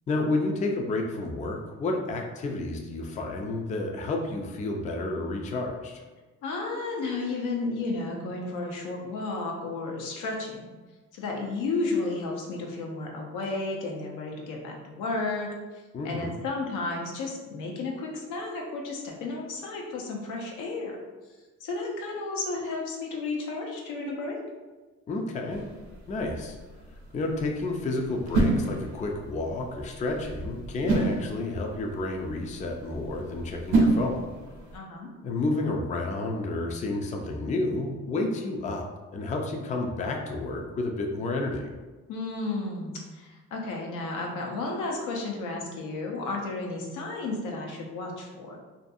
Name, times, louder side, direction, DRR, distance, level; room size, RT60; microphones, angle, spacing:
voice 1, 0.1-6.0 15.9-16.3 25.1-25.6 26.1-26.6 27.1-34.3 35.2-38.9 39.1-41.7, left 2 dB, 25° left, 2 dB, 0.3 m, -30 dB
voice 2, 6.4-10.7 11.1-15.5 16.0-21.0 21.6-24.4 34.7-35.1 42.1-48.6, left 3 dB, 90° left, 0 dB, 0.6 m, -33 dB
sound 1, 25.5-34.8, right 2 dB, 70° right, 0.6 m, -30 dB
2.5 x 2.3 x 2.5 m, 1.3 s
cardioid pair, 90°, 30 cm